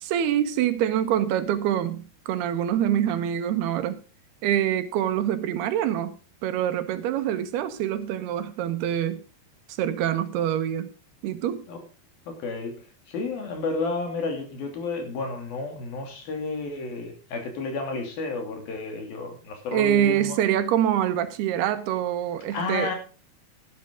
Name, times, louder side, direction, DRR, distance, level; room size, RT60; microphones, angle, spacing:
voice 1, 0.0-4.0 4.4-9.2 9.8-10.9 11.2-11.6 19.7-22.9, right 11 dB, 90° right, 3.2 m, -25 dB
voice 2, 12.3-12.8 13.1-20.4 22.5-23.0, left 3 dB, 70° left, 4.7 m, -31 dB
13.0 x 11.5 x 3.8 m
omnidirectional pair, 4.4 m